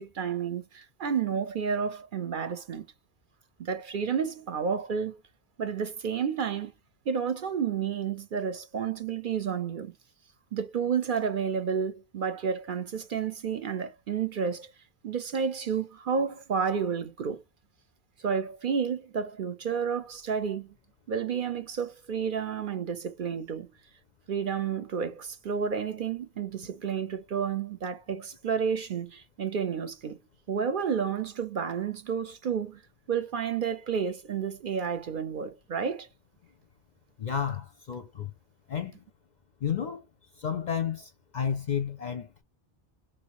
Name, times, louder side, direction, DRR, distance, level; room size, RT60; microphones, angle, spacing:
voice 1, 0.0-2.9 3.6-5.2 5.6-6.7 7.1-9.9 10.5-14.7 15.0-17.4 18.2-20.7 21.1-23.7 24.3-30.2 30.5-32.8 33.1-36.1, right 6 dB, 55° right, 0.7 m, -31 dB
voice 2, 37.2-38.3 38.7-39.0 39.6-40.0 40.4-42.4, left 8 dB, 55° left, 0.5 m, -31 dB
4.0 x 2.7 x 2.9 m
omnidirectional pair, 1.1 m